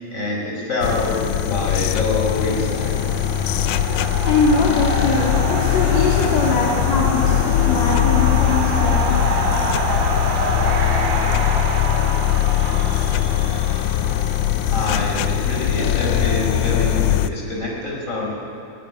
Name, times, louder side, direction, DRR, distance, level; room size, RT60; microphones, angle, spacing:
voice 1, 0.1-3.0 14.7-18.3, left 2 dB, 25° left, -2 dB, 5.4 m, -25 dB
sound 1, 0.8-17.3, left 12 dB, 85° left, 2.2 m, -20 dB
sound 2, 1.9-15.7, right 3 dB, 75° right, 3.9 m, -28 dB
voice 2, 4.2-9.2, left 3 dB, 65° left, -4 dB, 3.8 m, -22 dB
19.0 x 18.5 x 9.9 m, 2.7 s
omnidirectional pair, 3.4 m